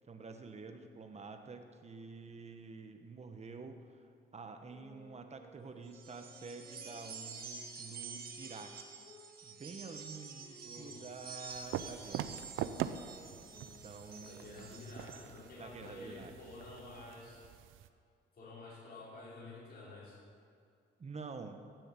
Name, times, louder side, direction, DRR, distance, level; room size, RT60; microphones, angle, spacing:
voice 1, 0.0-4.1 4.3-12.4 13.5-14.7 15.6-16.3 21.0-21.6, right 4 dB, 35° right, 6 dB, 1.3 m, -49 dB
sound 1, 4.6-9.3 9.8-14.7, left 1 dB, 20° left, 2.9 m, -60 dB
sound 2, 5.9-15.3, right 5 dB, 50° right, 1.7 m, -49 dB
voice 2, 10.6-11.4 14.3-17.4 18.3-20.2, left 2 dB, 50° left, -6 dB, 4.3 m, -50 dB
sound 3, 11.5-17.9, right 10 dB, 85° right, 0.6 m, -43 dB
15.0 x 7.8 x 7.7 m, 2.3 s
cardioid pair, 90°, 20 cm